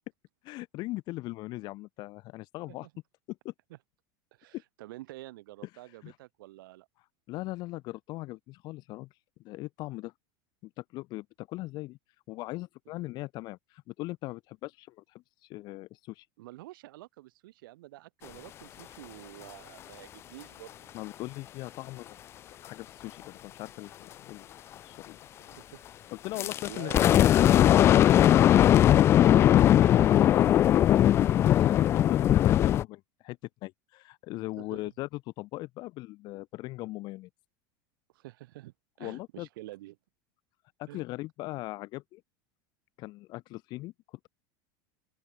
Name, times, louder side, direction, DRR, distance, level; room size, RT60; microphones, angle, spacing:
voice 1, 0.4-2.9 3.4-3.5 4.5-4.6 6.0-6.1 7.3-9.1 9.4-10.1 10.6-12.0 12.3-16.3 20.9-22.2 22.6-24.5 24.8-25.2 26.1-27.7 31.4-37.3 39.0-39.5 40.8-42.2 43.0-44.3, left 19 dB, 40° left, 2.4 m, -39 dB
voice 2, 4.3-6.9 16.4-20.9 25.4-25.9 26.3-27.5 28.8-30.8 34.6-34.8 38.1-40.0 40.9-41.0, right 17 dB, 80° right, 6.1 m, -48 dB
sound 1, 26.4-32.8, left 11 dB, 25° left, 0.4 m, -20 dB
open air
supercardioid pair, 165°, 11 cm